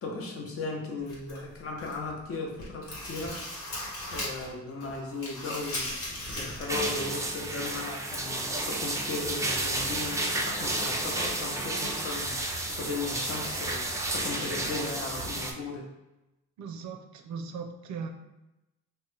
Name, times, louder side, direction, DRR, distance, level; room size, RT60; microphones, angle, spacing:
voice 1, 0.0-3.4 4.1-5.9 6.3-15.9, left 3 dB, 50° left, 1 dB, 0.7 m, -36 dB
sound 1, 1.1-2.1 2.5-4.5 4.8-6.9 7.2-7.3 8.1-8.2, left 1 dB, 75° left, 1.1 m, -38 dB
sound 2, 6.7-15.5, right 2 dB, 10° right, 0.3 m, -31 dB
voice 2, 16.6-18.1, right 5 dB, 70° right, 5 dB, 0.5 m, -38 dB
2.8 x 2.1 x 3.2 m, 0.96 s
cardioid pair, 90°, 30 cm